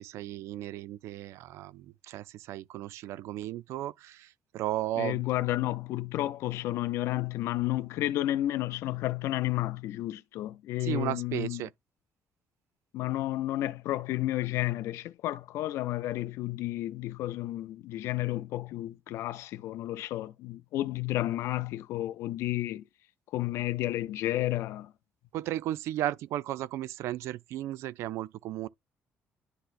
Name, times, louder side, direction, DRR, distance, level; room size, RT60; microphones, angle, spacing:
voice 1, 0.0-5.3 10.8-11.7 25.3-28.7, right 13 dB, 90° right, 0.4 m, -35 dB
voice 2, 5.0-11.6 12.9-22.8 23.3-24.9, left 15 dB, 90° left, 0.4 m, -31 dB
11.5 x 3.9 x 2.5 m
cardioid pair, 170°, 5 cm